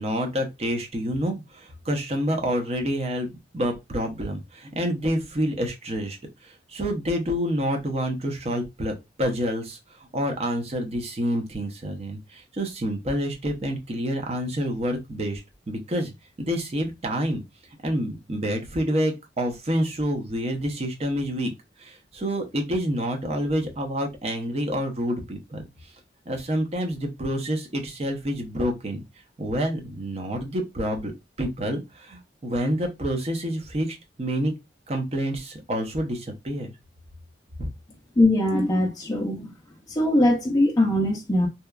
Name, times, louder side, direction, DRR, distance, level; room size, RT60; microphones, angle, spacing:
voice 1, 0.0-8.9 9.2-16.1 16.4-17.4 17.8-21.5 21.8-25.7 26.3-29.0 29.4-31.1 31.4-34.5 34.9-36.7 37.6-37.7, equal, 35° right, 0.6 m, -28 dB
voice 2, 38.2-39.5 39.9-41.5, left 1 dB, 20° left, 0.4 m, -21 dB
2.8 x 2.2 x 2.3 m
head